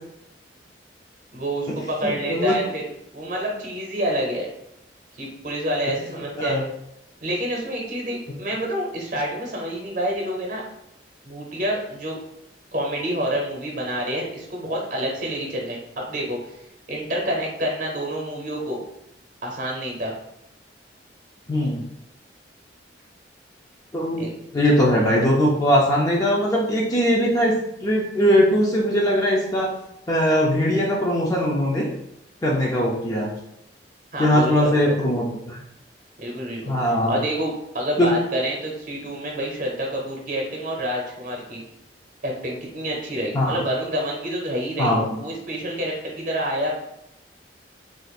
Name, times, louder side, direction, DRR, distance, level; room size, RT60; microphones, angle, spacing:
voice 1, 1.3-2.8 3.1-4.5 5.1-6.6 7.2-10.6 11.2-12.2 12.7-18.8 19.4-20.1 24.2-24.3 34.1-35.0 36.2-41.6 42.2-46.7, right 1 dB, 50° right, -1 dB, 0.8 m, -28 dB
voice 2, 2.0-2.6 6.4-6.6 21.5-21.9 23.9-27.5 27.8-29.7 30.1-31.9 32.4-33.3 34.2-35.6 36.7-37.2 38.0-38.1 43.3-43.6 44.8-45.0, equal, 20° left, -3 dB, 0.4 m, -20 dB
2.5 x 2.4 x 4.1 m, 0.81 s
head